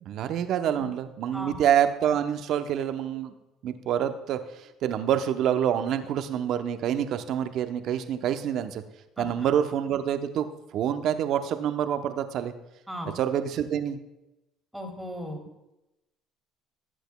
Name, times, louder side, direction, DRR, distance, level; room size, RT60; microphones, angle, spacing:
voice 1, 0.0-3.3 3.6-4.4 4.8-8.8 9.2-10.5 10.7-12.5 13.2-14.0, right 9 dB, 60° right, 9 dB, 0.8 m, -27 dB
voice 2, 9.2-9.5 12.9-13.1 14.7-15.4, equal, 5° right, 3 dB, 2.5 m, -37 dB
18.5 x 8.0 x 2.3 m, 0.95 s
hypercardioid pair, 70°, 0 cm